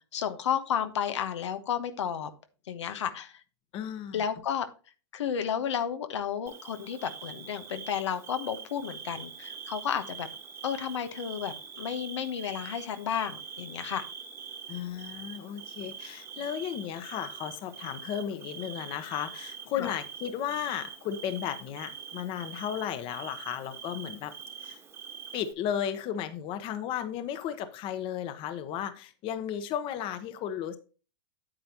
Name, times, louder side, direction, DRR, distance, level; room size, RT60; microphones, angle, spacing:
voice 1, 0.1-2.3 2.7-3.4 4.1-4.7 5.1-10.3 10.6-14.0 19.8-19.9, left 8 dB, 90° left, 9 dB, 1.2 m, -32 dB
voice 2, 3.7-4.3 14.7-24.3 24.6-24.8 25.3-30.8, left 9 dB, 35° left, 11 dB, 1.1 m, -34 dB
Bird / Cricket, 6.5-25.5, right 6 dB, 20° right, 1.4 m, -44 dB
8.9 x 7.9 x 2.9 m, 0.35 s
supercardioid pair, 135°, 15 cm